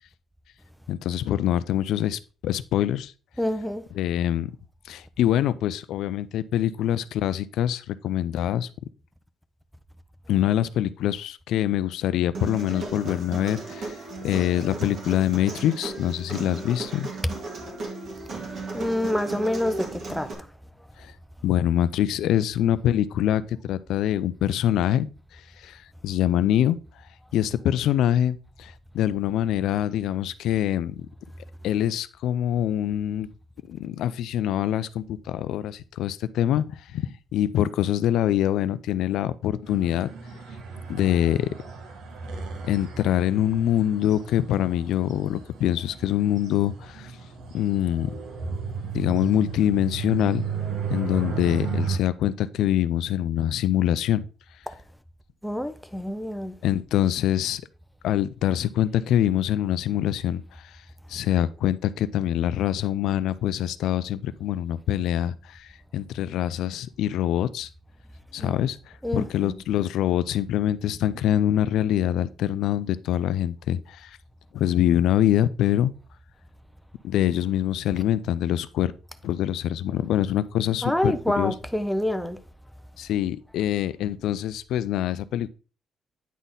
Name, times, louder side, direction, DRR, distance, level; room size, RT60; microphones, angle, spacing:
voice 1, 0.9-3.1 3.9-4.5 4.9-8.7 10.3-14.0 14.2-17.1 21.0-21.1 21.4-25.1 25.3-26.8 27.3-31.1 31.6-33.3 33.7-40.1 40.9-41.5 42.6-47.1 47.5-48.1 48.9-50.5 50.9-54.2 56.6-57.6 58.0-60.8 61.1-67.7 68.3-68.8 69.1-74.2 74.5-75.9 77.0-78.9 79.2-81.5 83.0-85.5, left 11 dB, 90° left, 0.4 m, -24 dB
voice 2, 3.4-3.8 18.7-20.5 54.7-54.8 55.4-56.5 68.4-68.6 69.0-69.6 80.8-82.4, left 1 dB, ahead, 0.5 m, -27 dB
Human voice, 12.3-20.3, right 3 dB, 45° right, 1.8 m, -35 dB
sound 1, 39.7-52.0, right 6 dB, 80° right, 1.2 m, -34 dB
9.2 x 4.1 x 3.8 m
cardioid pair, 155°, 0 cm